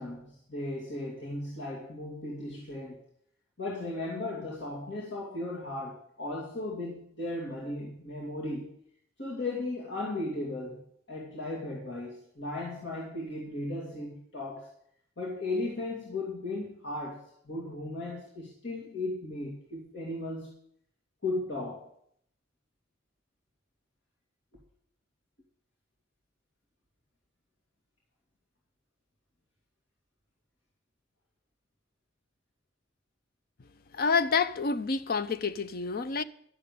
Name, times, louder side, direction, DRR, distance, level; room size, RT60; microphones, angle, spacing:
voice 1, 0.0-3.0 3.6-8.7 9.2-14.7 15.2-20.5 21.2-21.9, left 2 dB, 70° left, 2.7 m, -36 dB
voice 2, 33.9-36.2, left 5 dB, 55° left, 0.6 m, -28 dB
12.0 x 6.8 x 8.5 m
head